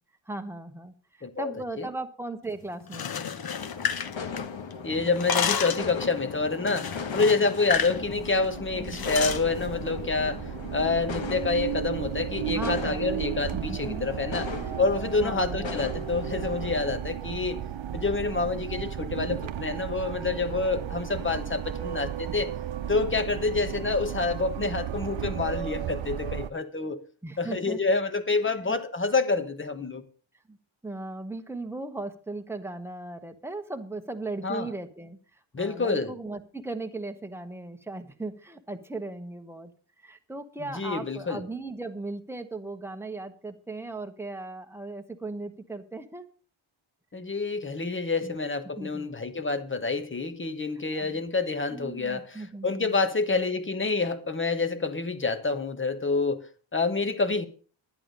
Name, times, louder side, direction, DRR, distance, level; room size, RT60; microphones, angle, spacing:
voice 1, 0.3-3.3 8.8-9.0 12.5-13.3 13.5-14.1 14.7-14.9 15.2-15.9 27.2-27.8 28.4-28.7 30.5-30.6 30.8-39.7 40.0-46.3 48.2-48.4 48.8-49.1 50.9-51.2 51.7-52.9, right 2 dB, 5° right, 1.1 m, -37 dB
voice 2, 1.2-1.5 1.8-1.9 4.8-14.5 14.8-17.6 17.9-22.5 22.9-27.0 27.4-30.0 34.4-34.7 35.5-36.1 40.6-41.4 47.1-57.5, left 3 dB, 25° left, 1.2 m, -28 dB
sound 1, 2.8-4.7 5.0-5.9 6.7-8.0 8.3-8.4 8.9-9.4, left 7 dB, 50° left, 0.9 m, -30 dB
sound 2, 3.6-16.8, left 5 dB, 65° left, 1.4 m, -38 dB
sound 3, 7.7-26.5, right 10 dB, 65° right, 0.8 m, -34 dB
11.0 x 11.0 x 5.2 m
wide cardioid pair, 165°, 48 cm